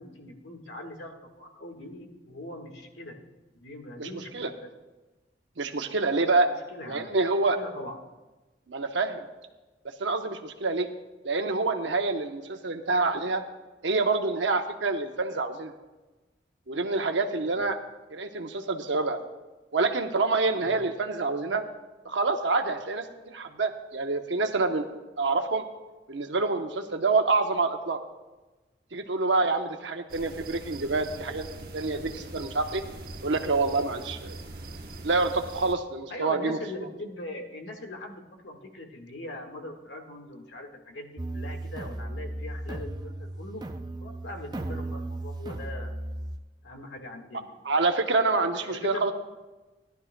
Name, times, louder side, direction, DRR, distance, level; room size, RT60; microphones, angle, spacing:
voice 1, 0.0-3.2 3.5-4.7 6.5-7.1 7.6-8.0 17.5-17.6 20.5-20.7 36.1-43.6 44.0-46.0 46.6-47.6 48.6-49.1, left 1 dB, 90° left, 3 dB, 1.6 m, -41 dB
voice 2, 5.6-6.5 6.9-7.6 8.7-9.2 10.0-10.9 11.2-13.4 13.8-15.7 16.7-17.8 18.1-19.2 19.7-21.6 22.0-24.8 25.2-25.6 26.1-28.0 28.9-31.5 31.7-32.8 33.2-34.4 35.0-36.6 47.6-49.1, right 3 dB, 90° right, 6 dB, 0.9 m, -27 dB
sound 1, 30.1-35.7, right 2 dB, 55° right, 1.0 m, -42 dB
sound 2, 41.2-46.4, right 1 dB, 20° right, 0.4 m, -36 dB
17.0 x 11.5 x 2.2 m, 1.1 s
head